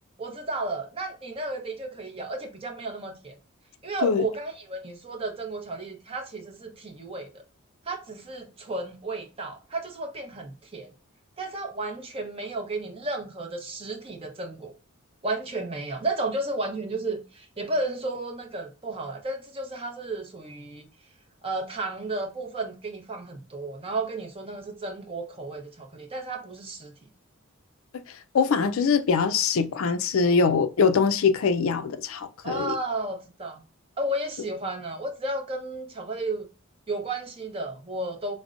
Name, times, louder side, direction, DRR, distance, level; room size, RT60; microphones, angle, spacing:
voice 1, 0.2-3.3 3.8-7.4 7.9-10.9 11.4-14.7 15.2-20.9 21.4-26.9 32.4-33.6 34.0-36.5 36.9-38.4, right 2 dB, 25° right, 0.6 m, -33 dB
voice 2, 28.3-32.8, left 5 dB, 75° left, 0.4 m, -23 dB
5.0 x 2.1 x 2.4 m
head